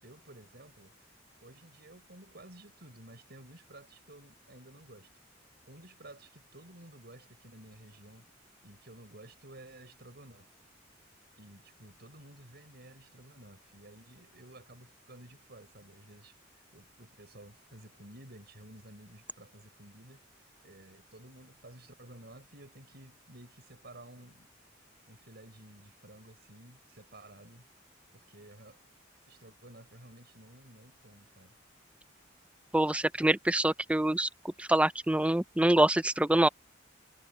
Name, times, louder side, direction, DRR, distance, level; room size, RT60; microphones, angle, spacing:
voice 1, 0.0-1.0 1.4-5.1 5.7-8.3 8.6-10.5 11.4-20.3 20.6-24.5 25.1-27.7 28.1-28.8 29.3-31.6, right 1 dB, 55° right, 5.9 m, -53 dB
voice 2, 32.7-34.3 34.6-36.5, right 1 dB, 5° right, 0.4 m, -25 dB
head